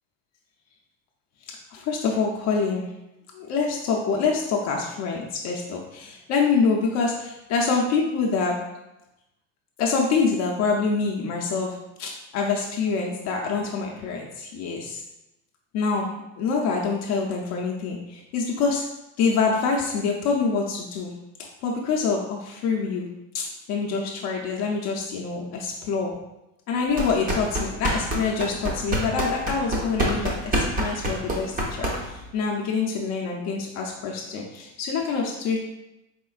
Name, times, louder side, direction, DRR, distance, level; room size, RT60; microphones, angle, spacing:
voice 1, 1.4-2.9 3.3-8.6 9.8-15.0 15.7-16.1 16.4-18.8 19.2-21.1 21.6-23.1 23.3-26.1 26.7-35.6, left 4 dB, 45° left, -1 dB, 0.5 m, -26 dB
sound 1, 26.9-32.3, right 1 dB, 20° right, 0.6 m, -27 dB
4.2 x 3.6 x 2.3 m, 0.91 s
cardioid pair, 155°, 38 cm